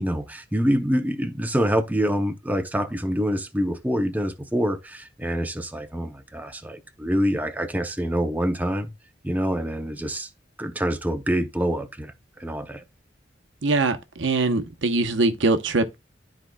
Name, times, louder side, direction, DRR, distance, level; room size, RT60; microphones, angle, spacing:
voice 1, 0.0-8.9 9.2-10.3 10.6-12.8, equal, 10° right, 0.6 m, -26 dB
voice 2, 13.6-15.9, right 3 dB, 75° right, 0.9 m, -22 dB
12.5 x 4.5 x 2.3 m
head